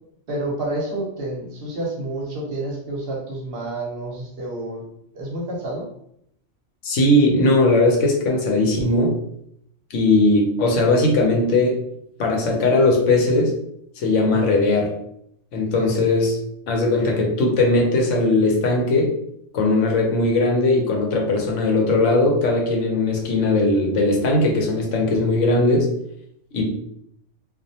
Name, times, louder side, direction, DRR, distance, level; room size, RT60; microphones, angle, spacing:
voice 1, 0.3-4.8 5.1-5.9 15.8-15.9, right 1 dB, 60° right, -2 dB, 0.8 m, -29 dB
voice 2, 6.8-9.2 9.9-11.8 12.2-13.5 14.0-14.9 15.5-16.4 16.7-19.1 19.5-25.9 26.5-26.8, left 2 dB, 80° left, 0 dB, 1.0 m, -19 dB
2.3 x 2.1 x 2.7 m, 0.74 s
omnidirectional pair, 1.2 m